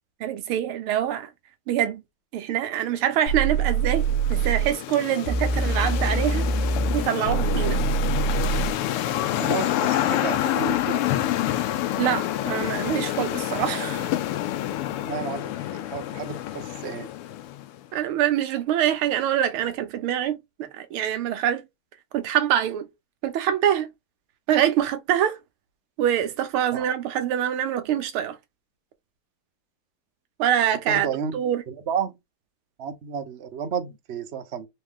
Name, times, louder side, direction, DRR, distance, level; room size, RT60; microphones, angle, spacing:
voice 1, 0.2-1.3 1.7-2.0 2.3-4.0 4.3-6.5 6.9-7.8 12.0-14.1 17.9-21.6 22.1-22.9 23.2-23.9 24.5-25.4 26.0-28.4 30.4-31.1 31.3-31.6, right 10 dB, 75° right, 1.6 m, -25 dB
sound 1, 3.3-17.8, left 13 dB, 85° left, 1.5 m, -28 dB
sound 2, 3.3-4.7 5.3-8.7, right 4 dB, 65° left, 1.5 m, -24 dB
voice 2, 9.3-11.1 14.9-17.1 26.7-26.9 30.9-31.4 31.7-32.2 32.8-34.7, right 7 dB, 60° right, 0.6 m, -32 dB
4.2 x 3.2 x 3.6 m
omnidirectional pair, 2.4 m